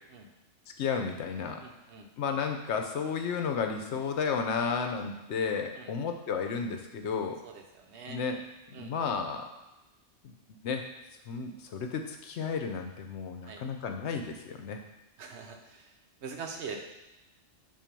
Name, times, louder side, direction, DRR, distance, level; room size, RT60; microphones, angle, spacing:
voice 1, 0.8-1.6 2.2-7.4 8.1-8.4 8.7-9.5 10.2-10.3 10.6-10.8 11.3-14.8, left 5 dB, 70° left, 5 dB, 0.9 m, -32 dB
voice 2, 1.6-2.1 5.7-5.9 7.4-8.2 8.7-8.9 13.4-13.6 15.2-15.9 16.2-16.8, right 5 dB, 70° right, 3 dB, 1.0 m, -43 dB
7.2 x 2.7 x 5.2 m, 1.0 s
omnidirectional pair, 1.2 m